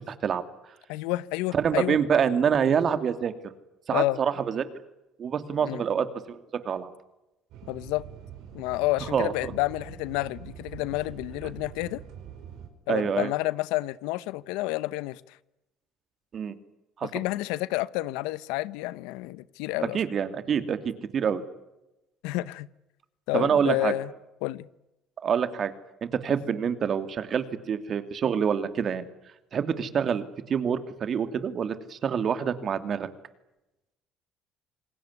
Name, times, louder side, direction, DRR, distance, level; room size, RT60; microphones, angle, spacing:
voice 1, 0.1-0.4 1.5-3.3 3.9-4.6 5.2-6.9 9.1-9.3 12.9-13.3 16.3-16.5 17.0-17.1 19.9-21.4 23.3-23.9 25.2-25.7 26.1-29.1 29.5-33.1, right 7 dB, 45° right, 11 dB, 2.7 m, -26 dB
voice 2, 0.9-2.0 3.9-4.2 5.6-5.8 7.7-8.0 8.5-12.0 12.9-15.4 17.0-20.0 22.2-22.7 23.3-24.1 24.4-24.7, left 18 dB, 90° left, 19 dB, 0.8 m, -29 dB
sound 1, 7.5-12.7, right 9 dB, 75° right, 5.0 m, -44 dB
27.5 x 20.0 x 9.8 m, 0.96 s
cardioid pair, 95°, 0 cm